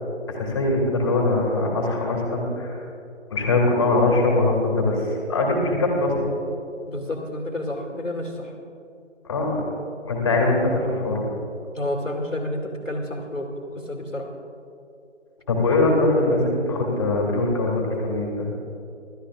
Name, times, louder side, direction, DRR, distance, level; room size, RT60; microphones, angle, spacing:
voice 1, 0.3-2.8 3.3-6.1 9.3-9.7 10.1-11.2 15.5-18.5, left 2 dB, 20° left, -1 dB, 2.7 m, -22 dB
voice 2, 6.9-8.5 11.7-13.5 13.9-14.3, left 1 dB, 90° left, 2 dB, 2.9 m, -30 dB
27.0 x 13.0 x 2.6 m, 2.7 s
figure-of-eight pair, 160°, 37 cm